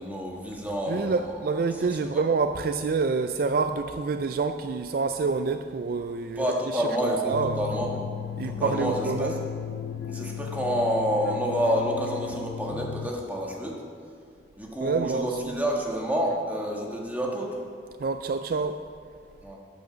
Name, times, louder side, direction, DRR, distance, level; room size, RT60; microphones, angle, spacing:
voice 1, 0.0-1.4 1.7-2.2 6.3-7.9 8.4-9.4 10.1-13.7 14.6-17.6 19.4-19.6, equal, 10° right, -1 dB, 1.6 m, -29 dB
voice 2, 0.9-7.6 8.4-9.3 14.8-15.6 18.0-18.8, right 4 dB, 55° right, 9 dB, 0.4 m, -27 dB
sound 1, 7.0-8.2, right 7 dB, 45° left, 1.4 m, -34 dB
sound 2, 7.3-13.1, left 8 dB, 85° left, 0.5 m, -35 dB
13.0 x 8.5 x 5.1 m, 2.2 s
head